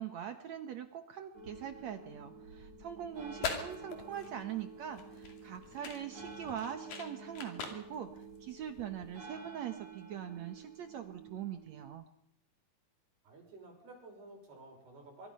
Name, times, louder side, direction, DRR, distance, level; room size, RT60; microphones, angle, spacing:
voice 1, 0.0-8.1 8.4-12.1, right 9 dB, 65° right, 8 dB, 1.8 m, -42 dB
sound 1, 1.3-11.9, right 4 dB, 40° right, 7.4 m, -51 dB
sound 2, 3.1-9.2, left 5 dB, 60° left, 4.1 m, -44 dB
voice 2, 3.4-4.1 13.2-15.3, right 2 dB, 90° right, 1 dB, 7.9 m, -53 dB
24.0 x 24.0 x 5.5 m, 0.74 s
omnidirectional pair, 4.5 m